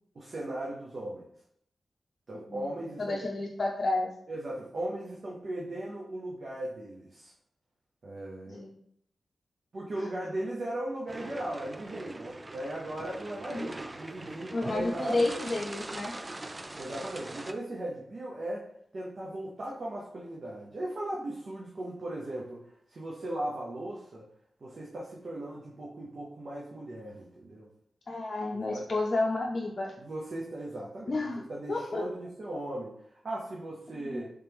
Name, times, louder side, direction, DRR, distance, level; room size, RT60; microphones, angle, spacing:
voice 1, 0.1-1.3 2.3-3.2 4.3-7.3 8.0-8.6 9.7-15.3 16.8-18.7 18.9-22.6 22.9-24.2 24.6-27.7 28.5-28.9 30.0-31.2 31.5-34.3, right 1 dB, 65° right, -4 dB, 0.8 m, -37 dB
voice 2, 3.0-4.1 8.5-8.7 13.5-13.7 14.5-16.2 28.1-29.9 31.1-31.4 31.7-32.1 33.9-34.3, left 2 dB, 55° left, -1 dB, 0.5 m, -31 dB
sound 1, 11.1-17.5, right 2 dB, 30° right, 0.4 m, -42 dB
3.3 x 2.9 x 3.4 m, 0.71 s
cardioid pair, 45°, 0 cm